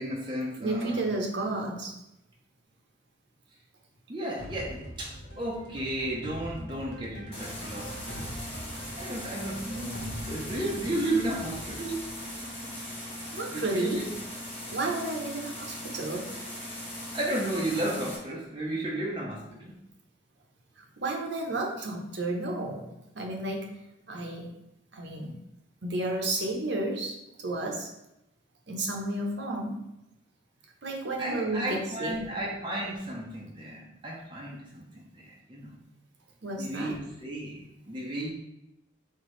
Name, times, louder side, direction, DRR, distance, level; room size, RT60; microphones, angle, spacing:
voice 1, 0.0-1.1 4.1-8.6 9.0-12.0 13.5-14.1 17.1-19.8 31.2-35.8 36.5-38.3, right 1 dB, 25° right, -3 dB, 0.7 m, -33 dB
voice 2, 0.6-1.9 13.3-14.0 14.7-16.3 20.8-22.8 23.1-23.7 24.1-24.5 24.9-25.3 25.8-27.9 28.7-29.8 30.8-32.2 36.4-36.9, right 2 dB, 60° right, 0 dB, 0.9 m, -32 dB
sound 1, 4.4-13.2, equal, 70° left, 1.1 m, -43 dB
sound 2, 7.3-18.2, left 1 dB, 30° left, 1.0 m, -39 dB
4.6 x 3.5 x 3.2 m, 0.87 s
head